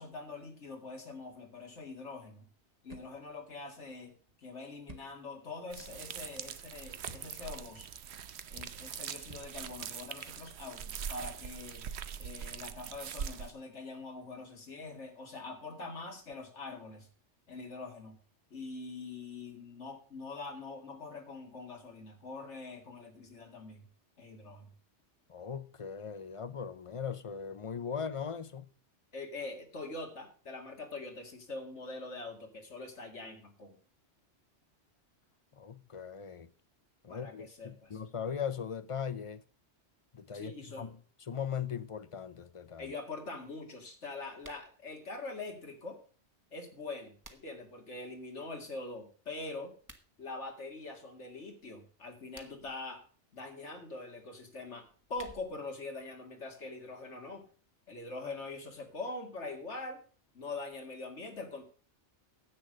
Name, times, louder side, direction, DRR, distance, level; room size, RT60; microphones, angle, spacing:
voice 1, 0.0-2.4 2.8-4.1 4.4-7.9 8.5-11.9 12.2-17.1 17.5-18.2 18.5-23.8 24.2-24.7 29.1-33.8 37.1-38.0 40.3-40.9 42.8-46.0 46.5-49.7 50.2-53.0 53.3-57.4 57.9-60.0 60.3-61.6, left 3 dB, 80° left, 2.5 m, -44 dB
sound 1, 2.1-12.8, right 2 dB, 35° right, 1.3 m, -57 dB
sound 2, 5.7-13.5, right 8 dB, 70° right, 1.0 m, -42 dB
voice 2, 25.3-28.7 35.6-36.5 37.0-39.4 40.1-41.0 41.3-42.9, left 7 dB, 40° left, 0.5 m, -39 dB
sound 3, 44.4-44.7 46.7-47.7 49.7-50.1 52.1-52.8 54.8-55.7, right 1 dB, 15° right, 1.2 m, -55 dB
10.0 x 8.3 x 6.3 m
omnidirectional pair, 1.2 m